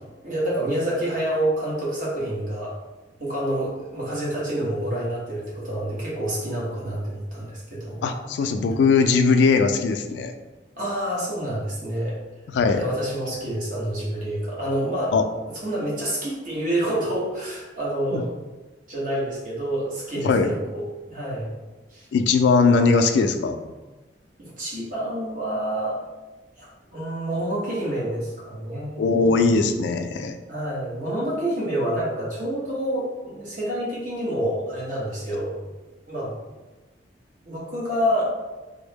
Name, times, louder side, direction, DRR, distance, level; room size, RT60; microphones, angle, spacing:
voice 1, 0.2-2.8 3.2-8.0 10.8-12.2 12.7-15.2 15.6-18.3 18.9-21.5 21.9-22.1 24.4-26.0 26.6-29.4 30.5-35.6 36.1-36.3 37.4-38.3, right 1 dB, 50° right, -6 dB, 1.1 m, -28 dB
voice 2, 8.0-10.3 12.5-12.8 15.1-15.2 18.1-18.2 20.2-20.5 22.1-23.6 29.0-30.4, left 4 dB, 80° left, 7 dB, 0.3 m, -20 dB
3.4 x 2.0 x 3.4 m, 1.2 s
head